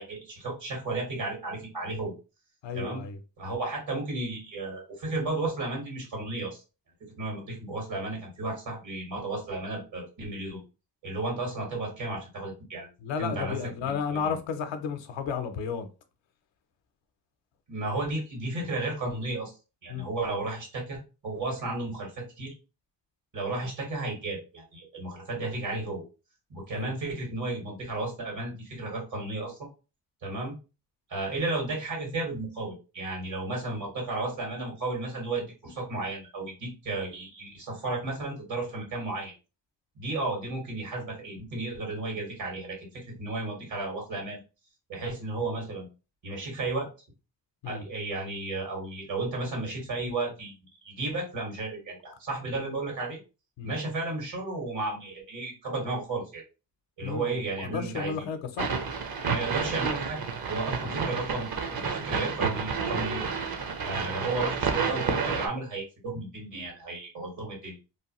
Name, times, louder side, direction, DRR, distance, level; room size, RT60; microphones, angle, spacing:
voice 1, 0.0-2.1 2.7-3.0 3.4-6.6 7.2-10.6 11.0-12.9 13.2-13.6 13.8-14.4 17.7-19.5 19.8-22.5 23.3-26.0 26.5-29.7 30.2-30.5 31.1-39.3 39.9-44.4 44.9-45.9 46.2-46.9 47.6-53.2 53.6-56.4 57.0-58.2 59.3-60.2 60.5-63.3 63.8-67.8, right 2 dB, 80° right, 1.8 m, -33 dB
voice 2, 2.6-3.2 13.0-15.9 19.9-20.1 26.7-26.9 47.6-47.8 53.6-53.7 57.0-58.7 60.7-60.8, left 6 dB, 80° left, 0.6 m, -33 dB
sound 1, 58.6-65.5, right 5 dB, 55° right, 0.7 m, -30 dB
3.1 x 2.2 x 2.9 m
supercardioid pair, 45°, 44 cm